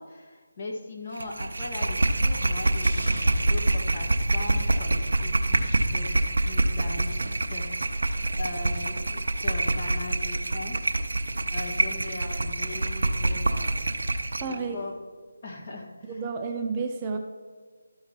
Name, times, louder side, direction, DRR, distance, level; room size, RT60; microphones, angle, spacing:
voice 1, 0.0-7.8 8.3-10.8 11.5-13.7 14.4-14.9 15.4-16.1, left 2 dB, 35° left, 0 dB, 1.5 m, -39 dB
sound 1, 1.2-14.5, right 2 dB, 70° right, 0.7 m, -26 dB
sound 2, 2.8-5.2 5.5-5.6, equal, 80° left, 2.5 m, -43 dB
voice 2, 14.4-14.8 16.1-17.2, right 4 dB, 20° right, 3 dB, 0.5 m, -31 dB
12.0 x 4.6 x 4.4 m, 1.5 s
figure-of-eight pair, 160°, 0 cm